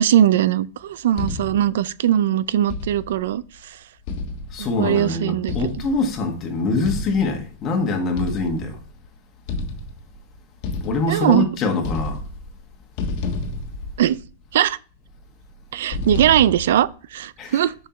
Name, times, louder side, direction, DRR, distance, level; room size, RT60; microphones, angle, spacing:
voice 1, 0.0-3.8 4.6-5.7 11.1-11.5 14.0-14.2 14.5-14.8 15.7-17.7, right 11 dB, 75° right, 0.4 m, -20 dB
sound 1, 1.2-1.8 2.7-3.3 4.1-4.9 5.5-6.2 6.8-7.5 8.2-8.9 9.5-10.2 10.6-11.5 11.8-12.6 13.0-14.5 15.9-16.9, left 2 dB, 50° left, 1.3 m, -30 dB
voice 2, 4.5-8.8 10.8-12.2 17.4-17.6, left 3 dB, 30° left, 1.7 m, -24 dB
6.7 x 5.6 x 3.1 m
supercardioid pair, 135°, 0 cm